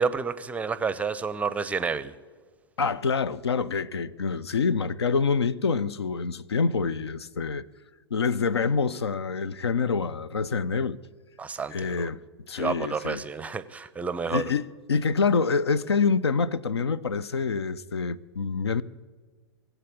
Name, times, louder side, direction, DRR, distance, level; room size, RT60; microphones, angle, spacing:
voice 1, 0.0-2.1 11.4-12.1 12.6-14.4, right 5 dB, 10° right, 0.5 m, -30 dB
voice 2, 2.8-7.6 8.1-11.0 11.7-12.2 12.5-13.2 14.3-18.8, left 5 dB, 75° left, 0.5 m, -26 dB
19.5 x 8.0 x 8.3 m
figure-of-eight pair, 105°, 14 cm